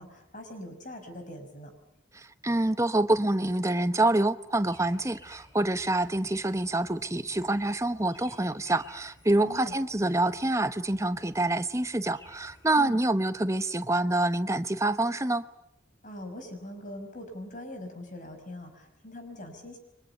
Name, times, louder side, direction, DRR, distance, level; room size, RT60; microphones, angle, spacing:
voice 1, 0.0-1.7 9.4-9.7 12.8-13.0 16.0-19.8, left 1 dB, 40° left, 5.4 m, -42 dB
voice 2, 2.1-15.4, right 2 dB, 15° right, 0.9 m, -26 dB
sound 1, 4.7-12.7, equal, 15° left, 6.3 m, -56 dB
30.0 x 24.5 x 6.9 m
head